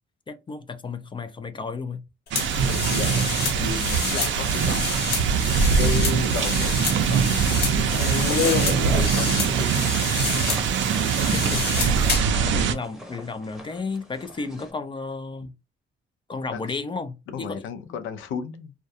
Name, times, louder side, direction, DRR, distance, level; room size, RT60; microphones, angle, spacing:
voice 1, 0.3-2.0 11.2-12.1 12.5-15.5 16.3-17.6, left 4 dB, 25° left, 0.4 m, -33 dB
sound 1, 2.3-12.4, left 5 dB, 55° left, 0.9 m, -29 dB
sound 2, 2.3-12.7, right 7 dB, 70° right, 0.5 m, -23 dB
voice 2, 2.6-4.9 5.8-9.8 16.5-16.6 17.3-18.7, left 7 dB, 85° left, 0.5 m, -34 dB
sound 3, 6.2-14.7, equal, ahead, 0.8 m, -42 dB
2.3 x 2.1 x 2.6 m
cardioid pair, 90°, 20 cm